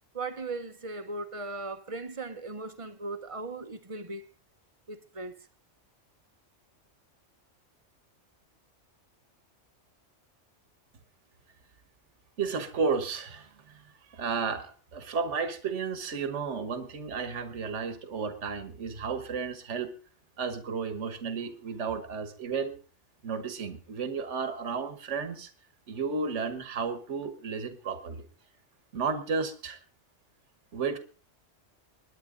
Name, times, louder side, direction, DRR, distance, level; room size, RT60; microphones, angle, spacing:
voice 1, 0.1-4.2 4.9-5.3, right 3 dB, 30° right, 1.0 m, -38 dB
voice 2, 12.4-19.9 20.4-22.8 23.2-25.5 25.9-28.2 28.9-29.8 30.7-31.0, right 5 dB, 70° right, 1.6 m, -33 dB
21.0 x 10.0 x 3.8 m
omnidirectional pair, 1.3 m